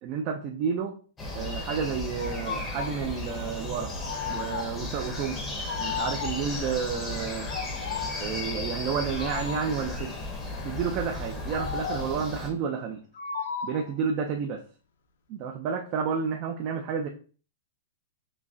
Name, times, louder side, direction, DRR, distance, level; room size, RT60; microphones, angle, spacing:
voice 1, 0.0-1.0 1.3-3.9 4.3-5.4 5.8-7.5 8.2-10.3 10.6-13.0 13.6-14.6 15.3-17.1, right 6 dB, 30° right, 4 dB, 0.3 m, -30 dB
sound 1, 1.2-12.5, left 2 dB, 10° left, 0.7 m, -35 dB
sound 2, 2.2-3.0 4.0-4.9 5.7-6.6 7.4-8.3 9.2-9.9 11.5-12.2 13.2-13.9, left 7 dB, 65° left, 0.5 m, -35 dB
5.9 x 2.0 x 2.6 m, 0.39 s
hypercardioid pair, 170°, 0 cm